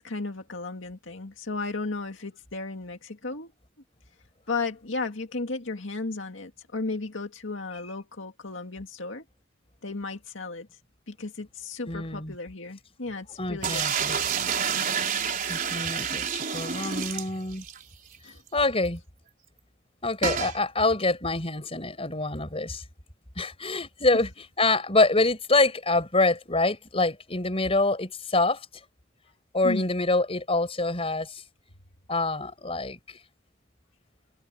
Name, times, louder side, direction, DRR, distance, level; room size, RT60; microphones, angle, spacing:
voice 1, 0.0-3.5 4.5-9.2 9.8-10.7 11.1-13.8 18.2-18.4 29.6-29.9, left 3 dB, 75° left, 2.1 m, -34 dB
voice 2, 11.9-12.3 13.4-14.2 15.5-17.6 18.5-19.0 20.0-22.8 23.4-28.7 29.5-31.4 32.1-33.2, left 2 dB, 30° left, 4.9 m, -26 dB
sound 1, 13.6-17.8 18.1-18.2 18.5-18.6 20.2-20.6, right 7 dB, 45° right, 4.4 m, -28 dB
head